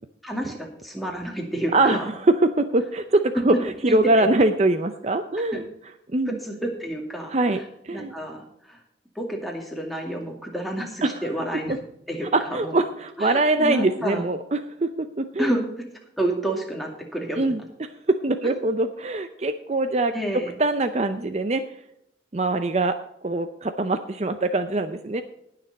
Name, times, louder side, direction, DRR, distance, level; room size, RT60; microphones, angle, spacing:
voice 1, 0.2-2.1 3.9-4.3 5.5-5.6 6.3-7.4 7.9-8.8 9.2-11.7 12.1-12.8 13.2-14.2 15.4-15.6 16.2-17.5 18.4-18.5 20.1-20.5, right 1 dB, ahead, 0 dB, 2.3 m, -29 dB
voice 2, 1.7-5.7 6.1-6.4 7.3-8.1 11.0-11.3 11.7-11.8 12.3-15.5 17.4-21.6 22.3-23.0 23.2-25.2, right 2 dB, 35° right, 9 dB, 0.6 m, -23 dB
19.5 x 6.7 x 4.1 m, 0.78 s
head